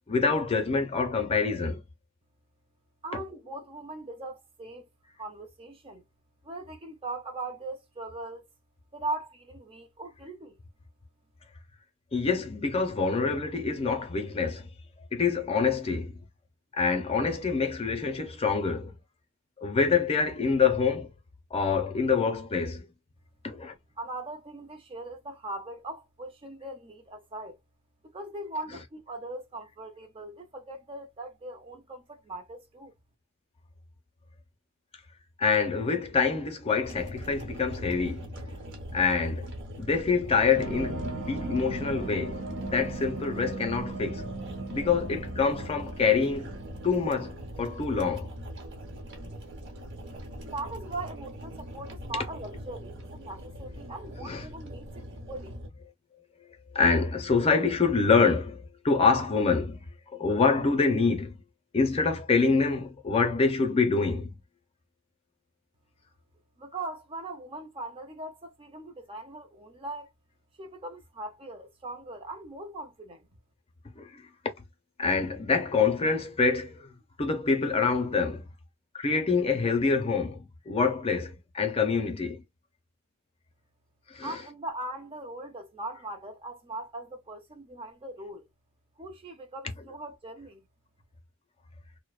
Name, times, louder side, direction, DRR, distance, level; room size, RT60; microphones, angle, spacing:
voice 1, 0.1-1.8 3.1-3.2 12.1-14.7 15.1-16.2 16.7-18.9 19.6-21.1 21.5-22.9 23.4-23.7 35.4-38.3 38.9-39.5 39.8-44.3 44.7-46.6 46.8-48.3 54.2-54.5 56.7-59.8 60.1-61.4 61.7-64.3 74.0-74.2 75.0-78.5 78.9-82.4 84.1-84.3, left 4 dB, 30° left, 0.5 m, -26 dB
voice 2, 3.0-4.9 5.2-6.0 6.4-8.4 8.9-10.6 24.0-27.6 28.1-32.9 50.4-55.6 66.6-70.1 70.6-73.3 84.2-88.5 89.0-90.6, right 2 dB, 25° right, 0.5 m, -40 dB
sound 1, 36.8-55.7, equal, 60° right, 1.0 m, -41 dB
sound 2, 40.6-47.3, right 2 dB, 90° right, 0.7 m, -38 dB
2.6 x 2.1 x 2.3 m
head